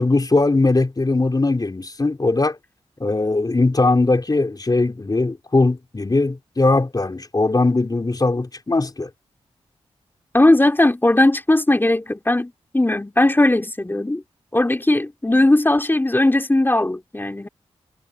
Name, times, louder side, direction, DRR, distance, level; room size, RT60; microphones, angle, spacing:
voice 1, 0.0-2.6 3.0-9.1, left 2 dB, 35° left, 3.7 m, -20 dB
voice 2, 10.3-14.2 14.5-17.5, left 1 dB, 20° left, 2.8 m, -18 dB
cardioid pair, 50°, 12 cm